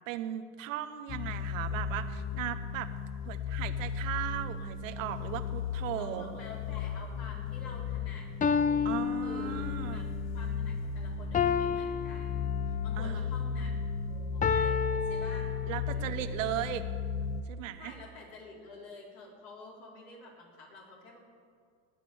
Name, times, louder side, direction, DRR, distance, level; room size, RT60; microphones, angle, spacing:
voice 1, 0.1-2.9 3.3-6.2 8.8-10.1 13.0-13.3 15.7-16.9 17.5-17.9, right 12 dB, 85° right, 10 dB, 0.9 m, -37 dB
sound 1, 1.1-17.4, left 6 dB, 45° left, 0.8 m, -35 dB
voice 2, 5.9-8.3 9.2-10.0 10.3-15.5 15.9-16.5 17.8-21.2, left 2 dB, 65° left, -2 dB, 4.0 m, -49 dB
sound 2, 7.7-7.8 8.4-10.0 11.3-13.0 14.4-16.0, left 6 dB, 20° left, 0.5 m, -31 dB
18.5 x 6.6 x 7.0 m, 2.3 s
hypercardioid pair, 80°, 38 cm